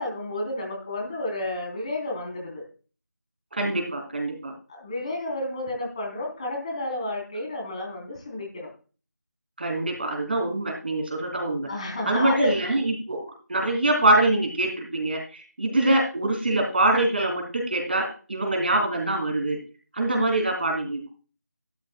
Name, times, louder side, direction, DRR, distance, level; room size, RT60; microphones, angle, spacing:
voice 1, 0.0-2.6 4.7-8.7 11.7-12.5, left 2 dB, 20° left, 0 dB, 3.7 m, -31 dB
voice 2, 3.5-4.5 9.6-11.7 12.1-19.6 19.9-21.1, right 2 dB, 35° right, 1 dB, 3.2 m, -24 dB
14.5 x 12.5 x 2.3 m, 0.36 s
figure-of-eight pair, 175°, 10 cm